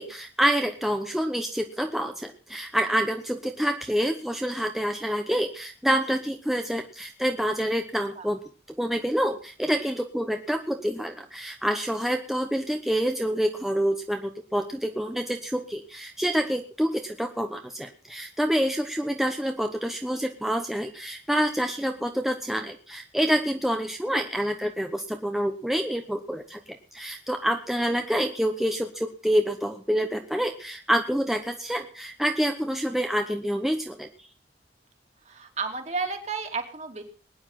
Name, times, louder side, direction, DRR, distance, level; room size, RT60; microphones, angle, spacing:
voice 1, 0.0-8.4 8.8-26.6 26.9-34.1, equal, ahead, 4 dB, 0.9 m, -27 dB
voice 2, 35.3-37.0, right 4 dB, 40° right, 4 dB, 2.8 m, -32 dB
20.5 x 9.8 x 5.8 m, 0.41 s
head